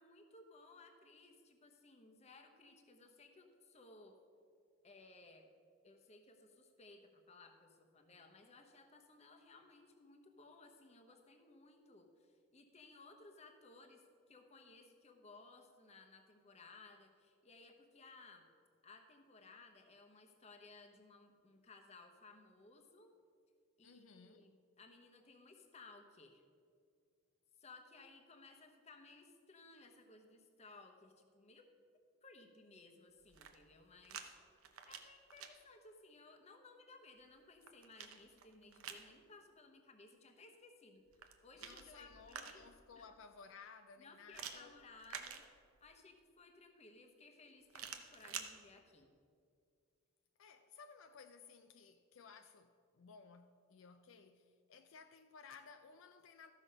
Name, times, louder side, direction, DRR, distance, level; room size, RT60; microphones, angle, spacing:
voice 1, 0.0-4.2 4.8-5.5 5.8-18.4 18.8-23.1 23.8-26.4 27.6-31.7 32.2-34.2 34.9-41.0 41.4-42.7 43.0-43.1 44.0-45.4 45.8-49.1, left 3 dB, 30° left, 1.0 m, -60 dB
voice 2, 23.8-24.5 41.6-44.8 50.4-56.5, left 5 dB, 70° left, 0.4 m, -58 dB
sound 1, 33.2-34.3 34.6-35.5 37.2-39.1 41.1-42.8 44.3-45.9 47.7-48.5, right 7 dB, 90° right, 0.8 m, -50 dB
14.0 x 6.2 x 5.5 m
head